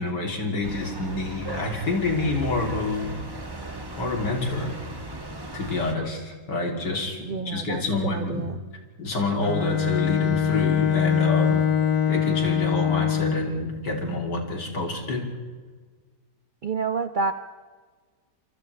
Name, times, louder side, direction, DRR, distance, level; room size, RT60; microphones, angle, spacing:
voice 1, 0.0-3.2 4.0-4.8 5.5-8.5 9.0-11.6 12.1-15.3, left 2 dB, 80° left, 0 dB, 3.8 m, -27 dB
sound 1, 0.6-6.0, right 2 dB, 15° right, 1.2 m, -37 dB
voice 2, 7.2-8.6 16.6-17.3, right 4 dB, 65° right, 9 dB, 0.4 m, -29 dB
Bowed string instrument, 9.4-13.6, left 8 dB, 65° left, 1.5 m, -23 dB
29.5 x 26.5 x 3.4 m, 1.5 s
omnidirectional pair, 1.8 m